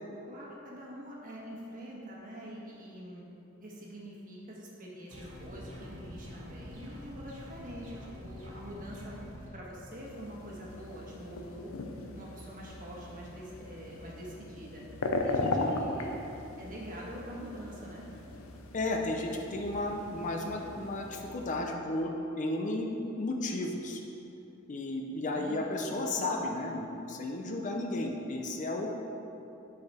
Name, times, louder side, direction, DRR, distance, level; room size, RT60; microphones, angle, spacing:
voice 1, 0.3-3.2 3.6-9.2 9.5-11.7 12.1-14.8 15.2-16.1 16.6-18.0 25.3-25.9, equal, 40° right, -4 dB, 1.3 m, -45 dB
sound 1, 5.1-9.5, left 1 dB, 80° right, 1.5 m, -46 dB
sound 2, 9.9-21.6, left 2 dB, 80° left, 0.6 m, -38 dB
voice 2, 15.4-15.7 18.7-22.9 23.2-24.0 24.7-28.9, left 2 dB, 40° left, 2 dB, 0.5 m, -33 dB
6.9 x 4.8 x 4.8 m, 2.9 s
head